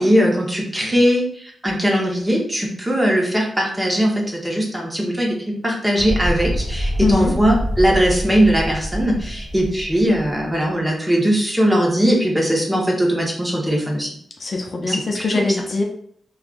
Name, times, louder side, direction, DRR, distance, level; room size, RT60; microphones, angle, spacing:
voice 1, 0.0-14.1 14.9-15.2, equal, 15° right, -1 dB, 1.0 m, -19 dB
sound 1, 6.0-10.5, equal, 5° left, 1.5 m, -26 dB
voice 2, 7.0-7.3 14.4-15.8, left 3 dB, 55° left, 1 dB, 0.6 m, -21 dB
3.4 x 2.3 x 2.5 m, 0.62 s
cardioid pair, 55°, 0 cm